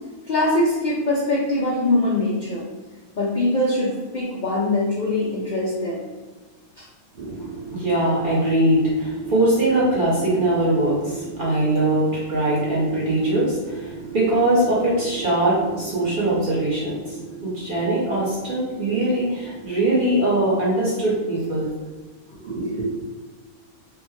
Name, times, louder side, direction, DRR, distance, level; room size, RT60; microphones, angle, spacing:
voice 1, 0.3-2.7 3.2-6.0 6.8-6.9, left 2 dB, 75° left, -6 dB, 0.4 m, -22 dB
voice 2, 7.1-21.7 22.4-22.9, right 1 dB, 45° right, -6 dB, 0.7 m, -22 dB
3.4 x 2.2 x 3.0 m, 1.3 s
omnidirectional pair, 1.6 m